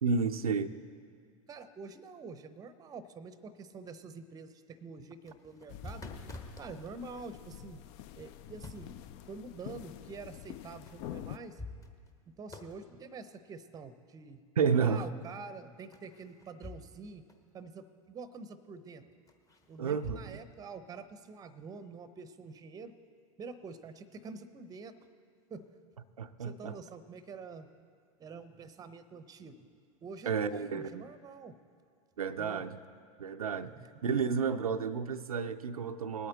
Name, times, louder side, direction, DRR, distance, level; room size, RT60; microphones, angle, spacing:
voice 1, 0.0-0.7 14.6-15.1 19.8-20.4 26.2-26.7 30.3-31.0 32.2-32.8 33.2-33.7 34.0-36.3, right 5 dB, 85° right, 8 dB, 0.5 m, -31 dB
voice 2, 1.5-6.0 6.6-7.8 8.1-8.9 9.3-11.6 12.3-14.4 14.8-17.2 17.5-19.1 19.7-22.9 23.4-24.9 25.5-25.7 26.4-27.7 28.2-29.7 30.0-31.6 32.4-32.6 33.6-33.9, right 4 dB, 20° right, 13 dB, 0.7 m, -47 dB
sound 1, 5.3-6.7 8.2-9.1 10.9-11.0 11.3-12.2 12.5-12.8 15.9-17.0 17.3-17.4 19.3-20.3, left 2 dB, 20° left, 1.1 m, -47 dB
sound 2, 5.7-11.4, left 12 dB, 45° left, 0.5 m, -47 dB
19.5 x 8.6 x 3.9 m, 2.1 s
hypercardioid pair, 95°, 18 cm